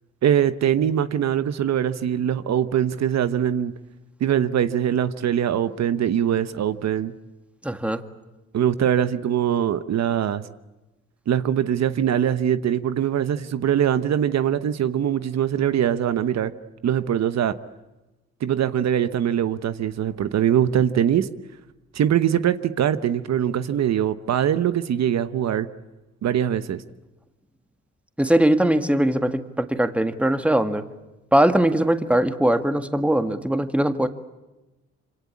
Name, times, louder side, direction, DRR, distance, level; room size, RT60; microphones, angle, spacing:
voice 1, 0.2-3.7 4.2-7.1 8.5-10.4 11.3-16.5 16.8-17.6 18.4-21.3 21.9-25.7 26.2-26.8, right 9 dB, 60° right, 12 dB, 1.1 m, -22 dB
voice 2, 7.6-8.0 28.2-30.8 31.3-34.1, right 1 dB, 5° right, 9 dB, 1.7 m, -20 dB
26.5 x 26.0 x 8.6 m, 1.1 s
cardioid pair, 90°, 30 cm